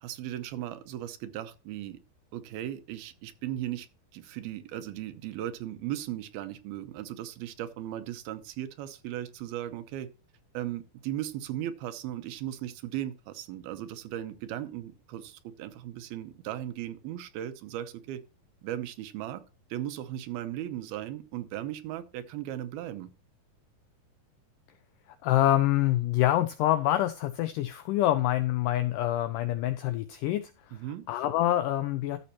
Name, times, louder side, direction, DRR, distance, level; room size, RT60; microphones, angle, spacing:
voice 1, 0.0-2.0 2.3-10.1 10.5-18.2 18.6-19.4 19.7-23.1 30.7-31.1, right 12 dB, 80° right, 2.7 m, -37 dB
voice 2, 25.2-30.5 31.1-32.2, left 14 dB, 85° left, 1.8 m, -26 dB
13.5 x 6.3 x 3.0 m
omnidirectional pair, 4.4 m